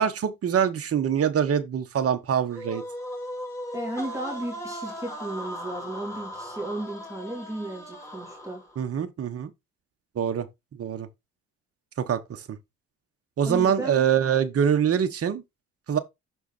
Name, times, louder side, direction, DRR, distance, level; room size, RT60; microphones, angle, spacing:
voice 1, 0.0-2.8 8.8-9.5 10.1-10.5 10.8-11.1 12.0-12.6 13.4-15.4 15.9-16.0, right 8 dB, 50° right, 1.3 m, -24 dB
sound 1, 2.5-8.8, equal, 10° left, 4.6 m, -38 dB
voice 2, 3.7-8.6 13.4-14.0, right 1 dB, 10° right, 2.6 m, -34 dB
6.5 x 4.5 x 4.3 m
cardioid pair, 90°, 30 cm